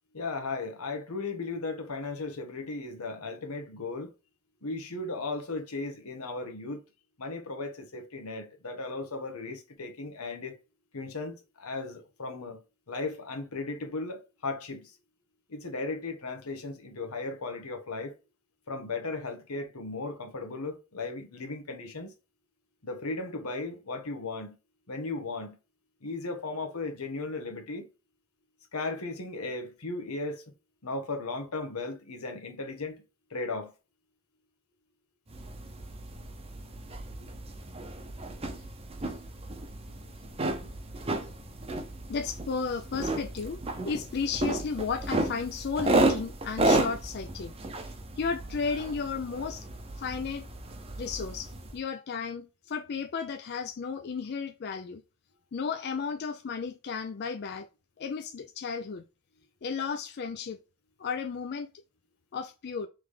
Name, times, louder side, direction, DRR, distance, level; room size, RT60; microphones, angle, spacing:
voice 1, 0.1-4.1 4.6-6.8 7.2-10.6 10.9-12.6 12.9-15.0 15.5-18.1 18.7-22.1 22.8-24.6 24.9-25.6 26.0-27.9 28.7-30.4 30.8-33.0 33.3-33.7 37.2-37.3, left 3 dB, 85° left, 1.1 m, -36 dB
sound 1, 35.3-51.8, right 2 dB, 25° right, 0.7 m, -32 dB
voice 2, 42.1-43.6 43.9-47.5 48.2-49.7 50.0-50.5 51.0-55.0 55.5-57.7 58.0-59.0 59.6-60.6 61.0-61.7 62.3-62.9, left 5 dB, 50° left, 0.4 m, -33 dB
3.5 x 3.2 x 3.6 m
head